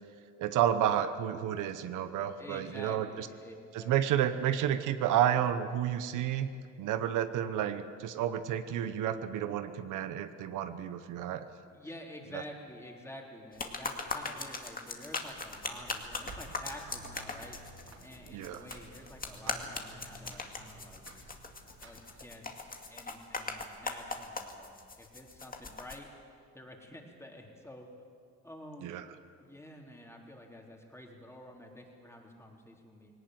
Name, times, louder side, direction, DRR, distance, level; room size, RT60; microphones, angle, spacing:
voice 1, 0.4-3.3 3.7-6.5 6.8-11.5 12.3-12.4 18.3-18.6 28.8-29.0, right 10 dB, 90° right, 10 dB, 1.0 m, -31 dB
voice 2, 2.4-3.9 11.7-21.3 21.8-26.1 26.5-27.9 28.4-28.9 29.4-33.1, left 1 dB, 10° left, 0 dB, 3.8 m, -49 dB
sound 1, 13.5-26.0, left 3 dB, 30° left, 2.2 m, -40 dB
sound 2, 15.2-22.7, right 2 dB, 60° right, 4.3 m, -52 dB
19.5 x 18.5 x 9.4 m, 2.3 s
cardioid pair, 90°, 30 cm